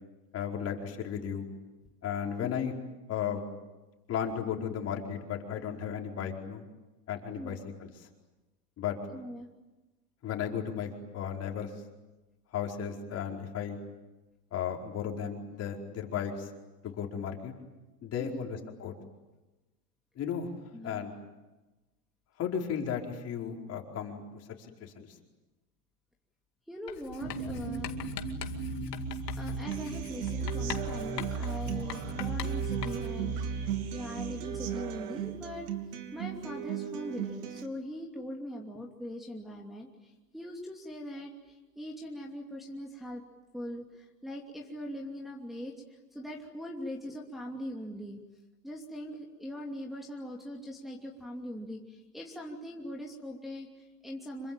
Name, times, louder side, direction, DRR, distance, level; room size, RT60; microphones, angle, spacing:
voice 1, 0.3-1.5 2.0-2.7 3.1-3.4 4.1-6.6 7.1-8.1 8.8-9.0 10.2-11.7 12.5-13.8 14.5-16.5 16.8-17.5 18.0-18.9 20.2-20.5 20.8-21.1 22.4-24.2 24.8-25.1, left 8 dB, 30° left, 1 dB, 4.8 m, -35 dB
voice 2, 9.1-9.5 18.2-18.5 20.7-21.1 26.7-28.0 29.3-35.7 36.1-43.2 43.5-48.2 48.6-54.5, equal, ahead, -3 dB, 2.8 m, -41 dB
Writing, 26.9-33.3, left 10 dB, 85° left, 2.4 m, -43 dB
sound 1, 27.2-35.8, right 3 dB, 35° right, 6.6 m, -37 dB
Human voice / Acoustic guitar, 29.7-37.7, right 11 dB, 70° right, 3.1 m, -37 dB
27.0 x 24.0 x 9.0 m, 1.1 s
hypercardioid pair, 125°, 48 cm